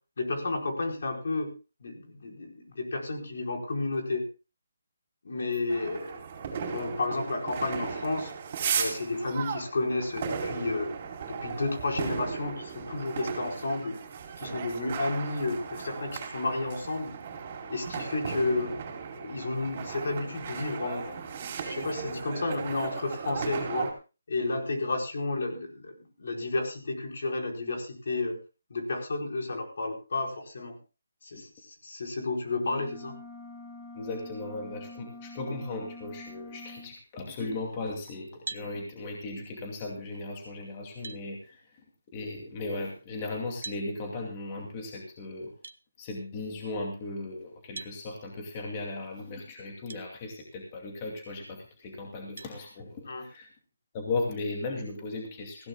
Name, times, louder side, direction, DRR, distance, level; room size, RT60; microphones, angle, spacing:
voice 1, 0.2-1.5 1.8-4.2 5.2-6.2 6.6-8.3 8.7-11.0 11.3-14.0 14.4-17.1 17.7-18.7 19.2-21.2 21.6-23.9 24.3-28.4 28.7-30.8 31.2-33.1 53.1-53.2, left 2 dB, 65° left, 1 dB, 4.8 m, -31 dB
sound 1, 5.7-23.9, right 6 dB, 30° right, 4.3 m, -36 dB
sound 2, 32.5-36.9, left 2 dB, 5° left, 1.6 m, -46 dB
voice 2, 34.0-41.6 42.1-45.5 46.0-53.5 53.9-55.7, left 2 dB, 25° left, 1 dB, 2.5 m, -37 dB
sound 3, 38.5-38.7 40.4-40.5 41.0-41.2 43.6-43.9 45.6-45.8 47.8-48.0 49.9-50.0 50.7-50.8 52.4-52.6, right 4 dB, 70° right, 0.9 m, -40 dB
19.5 x 16.0 x 2.3 m, 0.32 s
hypercardioid pair, 170°, 0 cm